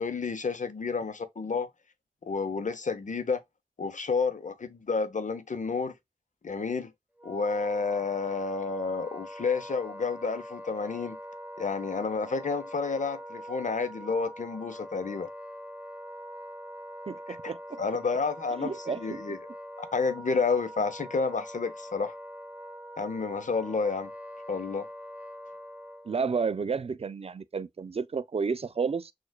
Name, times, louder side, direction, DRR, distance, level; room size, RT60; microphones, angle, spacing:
voice 1, 0.0-1.7 2.2-3.4 3.8-5.9 6.4-6.9 7.2-11.2 11.6-15.3 17.3-19.4 19.8-22.1 23.0-24.1 24.5-24.9, left 4 dB, 70° left, 0.7 m, -30 dB
Wind instrument woodwind instrument, 7.2-26.3, equal, 10° right, 0.7 m, -43 dB
voice 2, 17.1-17.8 18.6-19.2 26.1-29.1, right 5 dB, 50° right, 0.4 m, -31 dB
6.3 x 2.4 x 2.2 m
wide cardioid pair, 65°, 13 cm